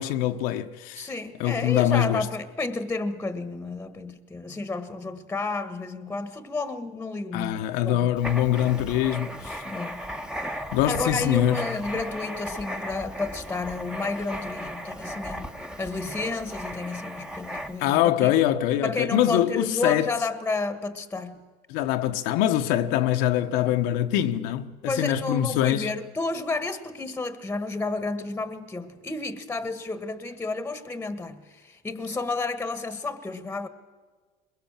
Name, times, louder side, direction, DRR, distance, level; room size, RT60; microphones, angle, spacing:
voice 1, 0.0-1.1 1.4-2.3 7.3-9.6 10.7-11.6 17.8-20.1 21.7-25.9, left 12 dB, 70° left, 1.1 m, -24 dB
voice 2, 1.0-8.2 9.6-10.2 10.9-18.3 18.8-21.4 24.9-33.7, left 3 dB, 10° left, 1.4 m, -31 dB
Writing, 8.2-18.0, equal, 5° right, 1.2 m, -36 dB
22.0 x 22.0 x 7.4 m
supercardioid pair, 110°, 16 cm